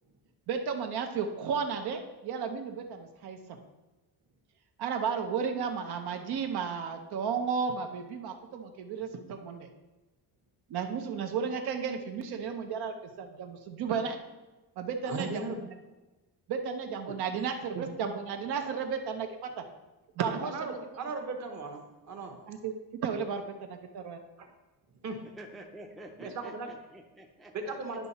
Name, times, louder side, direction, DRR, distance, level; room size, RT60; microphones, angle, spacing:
voice 1, 0.5-3.6 4.8-9.7 10.7-14.2 14.8-15.7 16.5-19.6 20.2-20.8 22.5-22.7 23.0-23.4 23.7-24.2, right 6 dB, 70° right, 5 dB, 0.9 m, -33 dB
voice 2, 15.0-15.6 17.7-17.9 20.4-22.3 24.4-24.5 25.0-25.2 26.2-26.7 27.5-28.1, right 3 dB, 45° right, 4 dB, 1.2 m, -37 dB
voice 3, 25.4-27.7, right 1 dB, ahead, 1 dB, 0.5 m, -48 dB
10.5 x 5.8 x 4.2 m, 1.2 s
cardioid pair, 175°, 40 cm